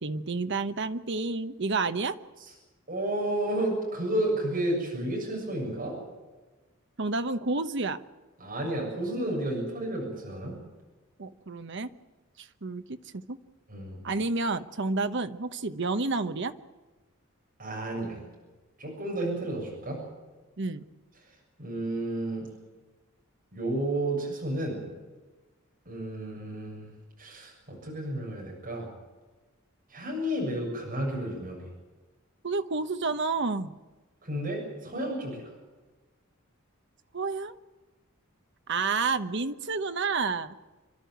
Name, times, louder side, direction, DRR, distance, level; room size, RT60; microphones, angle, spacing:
voice 1, 0.0-2.2 7.0-8.0 11.2-11.9 12.4-13.4 14.0-16.5 20.6-20.8 32.4-33.7 37.1-37.5 38.7-40.6, right 3 dB, 60° right, 10 dB, 1.1 m, -30 dB
voice 2, 2.9-5.9 8.4-10.6 13.7-14.0 17.6-18.2 18.8-20.0 21.6-22.5 23.5-24.9 25.9-26.9 27.2-28.9 29.9-31.7 34.2-35.5, right 1 dB, 45° right, -1 dB, 7.2 m, -31 dB
28.0 x 12.0 x 9.3 m, 1.2 s
head